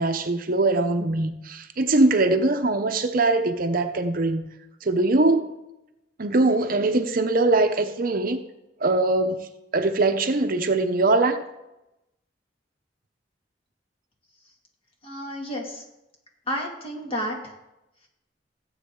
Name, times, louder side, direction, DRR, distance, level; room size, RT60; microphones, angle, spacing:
voice 1, 0.0-4.5 4.8-5.5 6.2-8.4 8.8-9.5 9.7-11.4, right 2 dB, 50° right, 0.7 m, -22 dB
voice 2, 15.0-15.8 16.5-17.5, equal, 30° left, 2.3 m, -31 dB
17.5 x 8.0 x 3.8 m
head